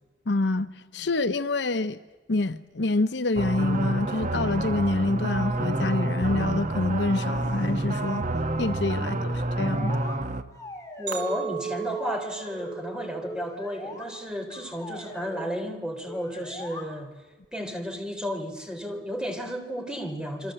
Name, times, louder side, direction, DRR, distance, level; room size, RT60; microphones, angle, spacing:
voice 1, 0.3-2.0 2.3-8.2 8.6-10.0, left 2 dB, 70° left, 0.8 m, -27 dB
sound 1, 3.4-10.4, right 2 dB, 40° right, 1.2 m, -28 dB
voice 2, 9.0-9.3 11.0-17.1 17.5-20.5, equal, 5° right, 3.5 m, -33 dB
sound 2, 9.1-10.2 10.5-11.4 11.7-12.8 13.2-14.0 14.5-15.5 16.1-16.8, left 2 dB, 20° left, 3.9 m, -41 dB
Chink clink, 11.1-15.4 15.9-16.3, right 7 dB, 75° right, 3.8 m, -38 dB
27.5 x 25.0 x 7.8 m
head